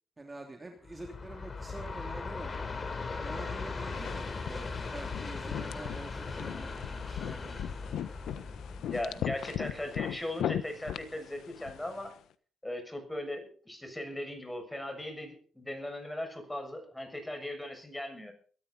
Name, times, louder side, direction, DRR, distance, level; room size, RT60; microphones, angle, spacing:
voice 1, 0.2-2.7 3.2-7.7, right 2 dB, 20° right, 2 dB, 3.1 m, -46 dB
Train, 0.8-10.1, left 4 dB, 30° left, 3.9 m, -39 dB
sound 1, 3.9-12.1, left 10 dB, 75° left, 1.2 m, -39 dB
voice 2, 8.9-12.1 12.6-18.3, left 1 dB, 10° left, 5 dB, 6.9 m, -38 dB
22.0 x 13.5 x 4.2 m, 0.43 s
cardioid pair, 90°, 0 cm